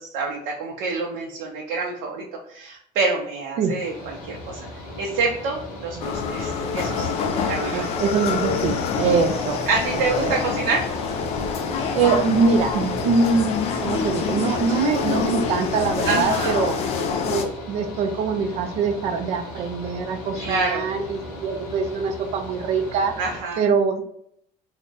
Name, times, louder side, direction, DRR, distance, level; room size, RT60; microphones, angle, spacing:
voice 1, 0.0-2.2 2.5-4.6 5.0-7.8 9.7-10.8 16.0-16.5 20.4-20.8 23.2-23.6, right 4 dB, 80° right, -1 dB, 0.6 m, -27 dB
Mechanical fan, 3.8-23.4, left 1 dB, 55° left, 1.0 m, -38 dB
sound 1, 6.0-17.4, left 5 dB, 40° left, 0.4 m, -26 dB
voice 2, 7.6-9.6 9.9-10.3 11.9-13.5 13.8-16.8 17.2-23.1 23.6-24.0, right 5 dB, 40° right, 6 dB, 0.4 m, -23 dB
3.5 x 2.1 x 3.8 m, 0.69 s
cardioid pair, 180°, 17 cm